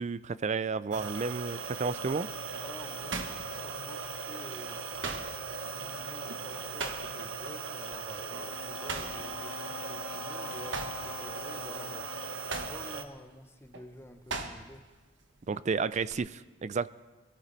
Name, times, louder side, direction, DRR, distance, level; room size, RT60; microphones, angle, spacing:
voice 1, 0.0-2.3 15.5-16.9, right 4 dB, 40° right, 17 dB, 0.4 m, -32 dB
sound 1, 0.8-1.2 1.7-4.2 4.5-7.4 7.7-8.0 8.3-10.3 10.6-14.9 15.2-16.1, right 3 dB, 70° right, 1.4 m, -40 dB
sound 2, 0.9-13.0, right 5 dB, 90° right, 1.0 m, -39 dB
voice 2, 2.6-4.8 5.3-12.1 12.5-14.8, left 1 dB, 15° left, 6 dB, 1.0 m, -49 dB
Wind instrument woodwind instrument, 8.3-12.9, left 7 dB, 70° left, 0.8 m, -46 dB
23.0 x 14.5 x 4.1 m, 1.3 s
head